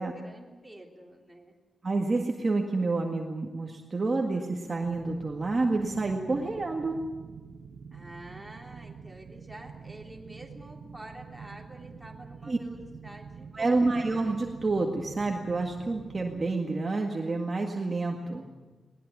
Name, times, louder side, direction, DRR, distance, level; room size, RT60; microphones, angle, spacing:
voice 1, 0.0-1.5 7.9-14.0, right 1 dB, 5° right, 0 dB, 3.3 m, -48 dB
voice 2, 1.8-7.1 12.5-12.6 13.5-18.4, right 3 dB, 30° right, 1 dB, 1.9 m, -28 dB
sound 1, 4.8-16.5, right 6 dB, 75° right, 1.1 m, -47 dB
21.0 x 19.5 x 9.7 m, 1.2 s
wide cardioid pair, 175°, 0 cm